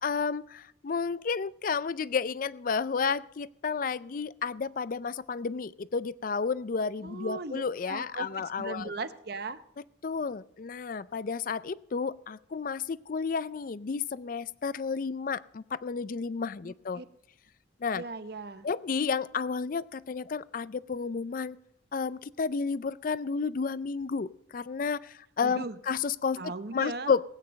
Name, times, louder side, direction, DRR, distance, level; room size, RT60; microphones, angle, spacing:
voice 1, 0.0-8.9 10.0-17.0 17.8-18.0 18.6-21.6 21.9-26.4 26.7-27.2, left 5 dB, 45° left, 18 dB, 0.4 m, -31 dB
voice 2, 7.0-9.6 16.6-17.1 17.9-18.7 25.4-25.8 26.4-27.1, right 3 dB, 55° right, 12 dB, 0.8 m, -38 dB
19.0 x 9.1 x 5.3 m, 0.75 s
head